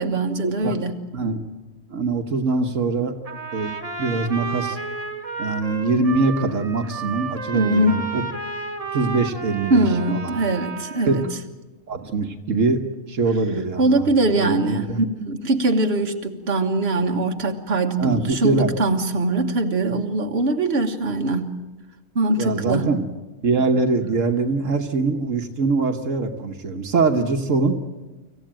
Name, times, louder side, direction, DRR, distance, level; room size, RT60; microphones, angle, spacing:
voice 1, 0.0-1.0 7.5-8.0 9.7-11.2 13.8-21.6 22.2-23.0, right 2 dB, 55° right, 4 dB, 1.7 m, -22 dB
voice 2, 1.1-1.5 1.9-3.2 3.5-4.8 5.4-8.2 8.9-10.4 11.1-11.2 11.9-12.8 13.1-15.0 18.0-18.7 22.4-23.0 23.4-27.7, right 3 dB, 80° right, 5 dB, 1.6 m, -23 dB
Trumpet, 3.2-11.3, right 4 dB, 30° right, 1.5 m, -32 dB
25.5 x 15.5 x 9.0 m, 1.2 s
omnidirectional pair, 1.3 m